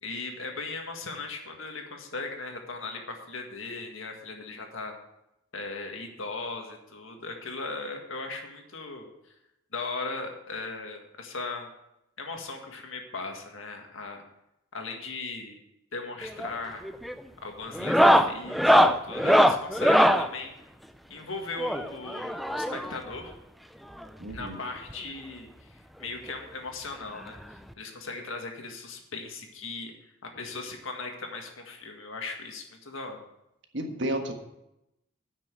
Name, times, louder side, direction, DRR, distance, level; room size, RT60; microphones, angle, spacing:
voice 1, 0.0-5.0 5.5-9.3 9.7-11.7 12.2-14.2 14.7-15.6 15.9-16.8 17.4-20.6 21.1-23.3 24.3-29.9 30.2-33.2, left 3 dB, 85° left, 3 dB, 1.7 m, -38 dB
sound 1, 16.2-16.6 16.8-17.2 17.7-20.3 21.6-23.0 24.0-24.1 24.3-24.4 24.9-25.0 26.3-26.4 27.7-27.8, equal, ahead, 0.3 m, -21 dB
voice 2, 24.2-24.6 33.7-34.3, right 1 dB, 60° right, 4 dB, 1.5 m, -31 dB
9.4 x 6.1 x 7.5 m, 0.87 s
head